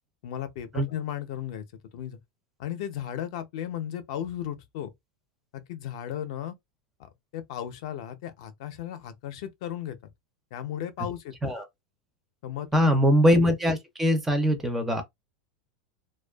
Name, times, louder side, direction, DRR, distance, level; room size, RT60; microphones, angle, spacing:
voice 1, 0.2-1.6 1.9-2.2 2.6-4.9 5.5-6.5 7.0-10.0 10.5-11.5 12.4-13.0, left 10 dB, 55° left, 0.5 m, -35 dB
voice 2, 12.7-15.0, equal, 5° right, 0.4 m, -22 dB
2.5 x 2.2 x 2.2 m
supercardioid pair, 165°, 4 cm